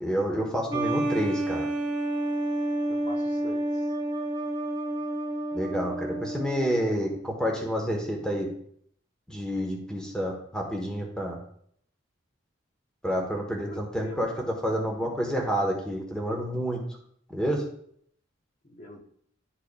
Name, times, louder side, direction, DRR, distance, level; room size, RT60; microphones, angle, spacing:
voice 1, 0.0-1.7 5.5-8.5 9.3-11.4 13.0-14.3 14.6-16.8 17.3-17.6, equal, 5° left, 0 dB, 1.1 m, -29 dB
sound 1, 0.7-7.0, right 1 dB, 20° right, 0.8 m, -30 dB
voice 2, 2.9-3.9 13.7-14.4 18.6-19.0, left 1 dB, 40° left, 0 dB, 1.0 m, -44 dB
12.0 x 4.6 x 2.3 m, 0.65 s
head